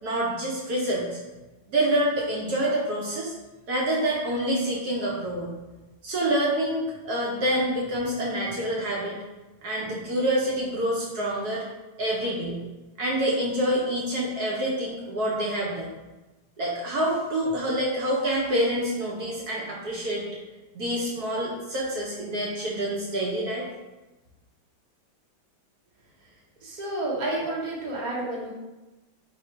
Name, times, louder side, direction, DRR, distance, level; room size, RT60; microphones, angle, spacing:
voice 1, 0.0-1.2 1.7-3.3 3.7-5.5 6.0-9.2 9.6-11.6 12.0-12.6 13.0-15.9 16.6-20.2 20.7-23.6, right 1 dB, 65° right, -4 dB, 1.1 m, -27 dB
voice 2, 26.6-28.5, right 2 dB, 35° right, -5 dB, 0.8 m, -30 dB
3.6 x 3.0 x 4.5 m, 1.1 s
omnidirectional pair, 2.1 m